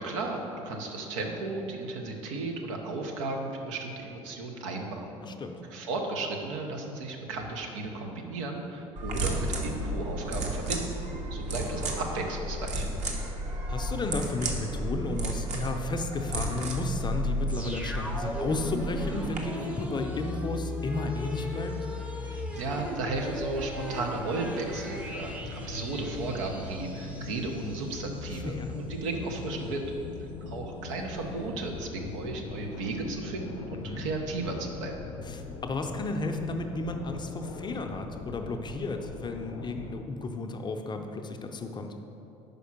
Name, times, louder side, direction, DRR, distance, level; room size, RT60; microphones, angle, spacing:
voice 1, 0.0-5.1 5.7-10.8 11.3-12.9 22.3-29.9 30.2-34.9, right 3 dB, 75° right, 1 dB, 0.9 m, -34 dB
voice 2, 5.2-5.6 13.7-21.8 28.3-28.8 33.7-34.0 35.2-41.9, left 2 dB, 25° left, 4 dB, 0.6 m, -33 dB
sound 1, 9.0-19.4, right 1 dB, 45° right, 1.1 m, -33 dB
sound 2, 17.5-28.3 28.6-28.7, left 1 dB, 5° right, 0.8 m, -38 dB
sound 3, 22.5-40.0, left 4 dB, 60° left, 0.8 m, -41 dB
5.2 x 4.9 x 5.9 m, 2.9 s
hypercardioid pair, 65°, 17 cm